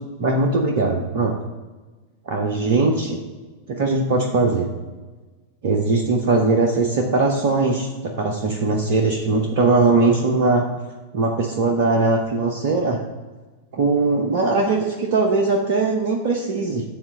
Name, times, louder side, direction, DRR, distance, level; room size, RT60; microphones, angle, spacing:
voice 1, 0.2-1.3 2.3-3.2 3.7-4.7 5.6-10.6 11.1-13.0 13.7-16.8, right 3 dB, 50° right, 1 dB, 0.8 m, -20 dB
7.6 x 4.1 x 5.7 m, 1.3 s
figure-of-eight pair, 90°, 0 cm